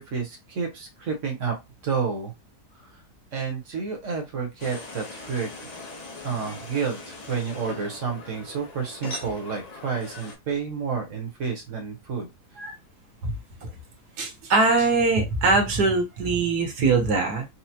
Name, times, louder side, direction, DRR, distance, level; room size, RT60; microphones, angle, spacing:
voice 1, 0.0-1.6 1.8-2.3 2.8-3.0 3.3-5.8 6.2-12.3, right 5 dB, 55° right, 3 dB, 1.1 m, -30 dB
sound 1, 4.6-10.4, left 2 dB, 40° left, 0.6 m, -40 dB
voice 2, 14.2-17.5, right 3 dB, 75° right, 3 dB, 1.5 m, -22 dB
4.2 x 2.1 x 2.8 m, 0.22 s
omnidirectional pair, 1.7 m